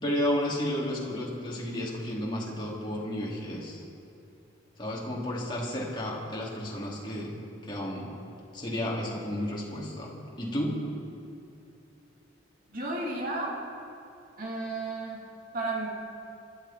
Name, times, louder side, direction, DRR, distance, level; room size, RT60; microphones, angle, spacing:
voice 1, 0.0-3.8 4.8-7.3 7.6-8.1 8.5-10.8, left 1 dB, 25° left, -4 dB, 3.1 m, -32 dB
voice 2, 12.7-13.6 14.4-15.2 15.5-15.9, right 2 dB, 45° right, -3 dB, 3.5 m, -33 dB
25.5 x 12.0 x 4.4 m, 2.7 s
head